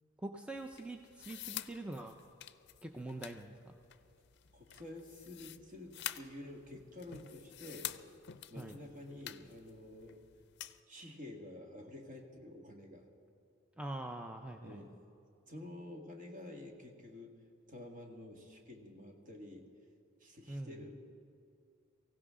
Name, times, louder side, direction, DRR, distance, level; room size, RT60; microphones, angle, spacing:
voice 1, 0.2-2.2 2.8-3.7 8.6-8.8 13.8-14.8 20.5-20.8, right 2 dB, 5° right, 4 dB, 0.5 m, -44 dB
sound 1, 0.5-10.8, left 12 dB, 60° left, 0.5 m, -48 dB
voice 2, 4.5-7.9 8.5-10.2 10.9-13.0 14.6-14.9 15.5-17.3 17.7-19.7 20.2-20.9, left 1 dB, 45° right, 1 dB, 1.9 m, -49 dB
23.5 x 16.0 x 3.7 m, 2.6 s
head